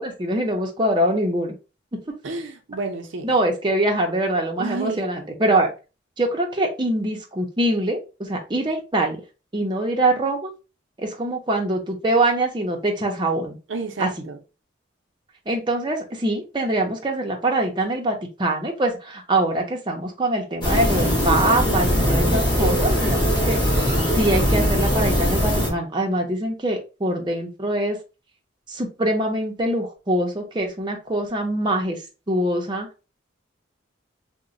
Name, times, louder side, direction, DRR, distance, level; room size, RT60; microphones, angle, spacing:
voice 1, 0.0-1.5 1.9-2.0 3.2-5.7 6.2-9.2 9.5-10.5 11.0-13.6 14.0-14.1 15.5-23.6 24.1-28.0 28.7-32.0 32.3-32.9, right 1 dB, 25° right, 0.6 m, -23 dB
voice 2, 2.2-3.3 4.6-5.1 13.7-14.4, right 3 dB, 75° right, 0.6 m, -30 dB
sound 1, 20.6-25.7, equal, 25° left, 1.1 m, -20 dB
3.0 x 2.1 x 3.7 m
head